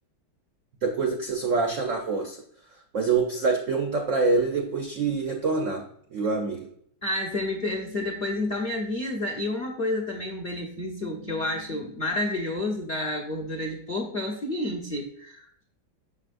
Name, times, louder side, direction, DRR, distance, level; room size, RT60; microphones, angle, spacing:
voice 1, 0.8-2.4 2.9-5.8 6.1-6.7, right 4 dB, 65° right, 2 dB, 0.7 m, -25 dB
voice 2, 7.0-15.6, left 1 dB, 35° left, 0 dB, 0.9 m, -30 dB
6.9 x 6.1 x 2.5 m, 0.66 s
omnidirectional pair, 2.1 m